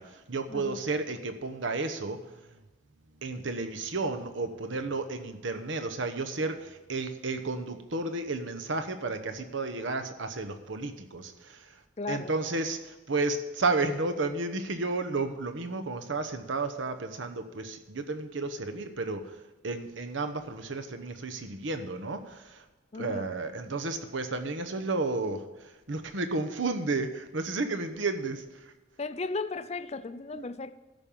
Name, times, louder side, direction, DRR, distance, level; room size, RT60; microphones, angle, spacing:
voice 1, 0.0-2.2 3.2-11.8 12.1-19.4 19.6-22.6 23.0-28.7 30.3-30.5, right 3 dB, 70° right, 7 dB, 1.0 m, -32 dB
voice 2, 12.0-12.4 22.9-23.3 29.0-30.8, left 3 dB, 35° left, 13 dB, 0.5 m, -35 dB
13.5 x 5.4 x 7.3 m, 1.2 s
head